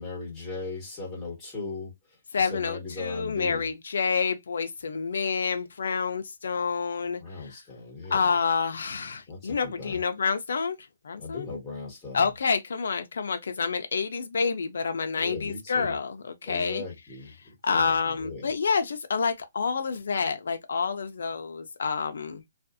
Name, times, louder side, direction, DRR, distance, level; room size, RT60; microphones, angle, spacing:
voice 1, 0.0-1.9 2.4-3.6 7.2-8.3 9.3-10.0 11.2-12.3 15.2-15.9 16.5-17.3 17.7-18.5, left 3 dB, 10° left, 1.3 m, -38 dB
voice 2, 2.3-7.6 8.1-10.8 11.0-11.5 12.1-16.8 17.6-22.4, left 5 dB, 75° left, 0.5 m, -28 dB
2.5 x 2.3 x 2.5 m
hypercardioid pair, 165°, 0 cm